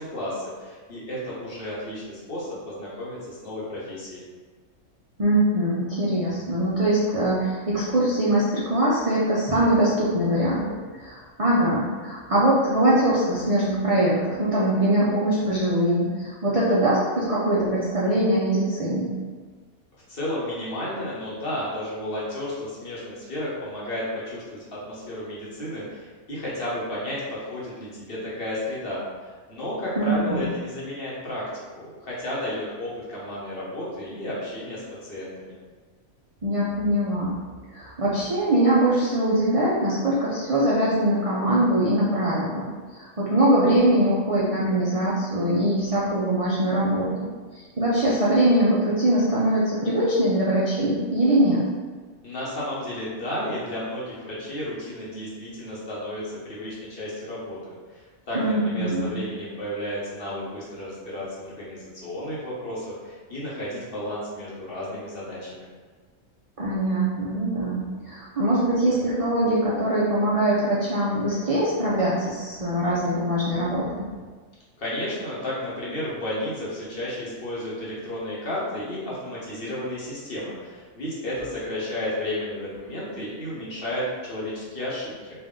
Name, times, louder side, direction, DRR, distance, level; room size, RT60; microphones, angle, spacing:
voice 1, 0.0-4.2 20.1-35.6 52.2-65.7 74.8-85.1, left 1 dB, 45° left, -7 dB, 1.1 m, -32 dB
voice 2, 5.2-19.1 30.0-30.5 36.4-51.6 58.3-59.2 66.6-74.2, right 1 dB, 55° right, -7 dB, 0.3 m, -22 dB
3.4 x 2.5 x 3.6 m, 1.4 s
omnidirectional pair, 1.5 m